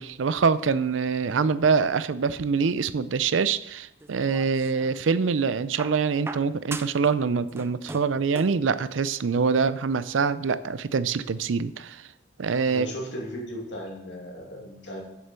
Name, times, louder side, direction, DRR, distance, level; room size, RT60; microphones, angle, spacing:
voice 1, 0.0-12.0 12.4-12.9, right 5 dB, 85° right, 15 dB, 0.5 m, -25 dB
sound 1, 4.0-5.0 5.8-7.1 7.4-8.7 9.7-9.8, right 3 dB, 15° right, 0.4 m, -40 dB
voice 2, 12.7-15.0, equal, 70° left, -2 dB, 2.7 m, -36 dB
7.7 x 6.7 x 6.8 m, 0.85 s
head